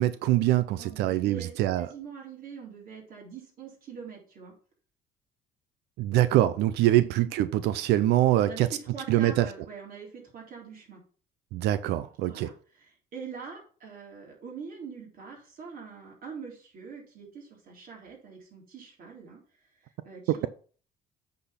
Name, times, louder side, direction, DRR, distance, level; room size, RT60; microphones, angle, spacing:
voice 1, 0.0-1.9 6.0-8.7 9.1-9.4 11.5-12.5 20.3-20.5, right 14 dB, 85° right, 0.5 m, -24 dB
voice 2, 0.8-4.6 8.4-11.0 12.3-20.5, right 6 dB, 55° right, 3.5 m, -44 dB
8.5 x 4.2 x 5.7 m
cardioid pair, 110°, 17 cm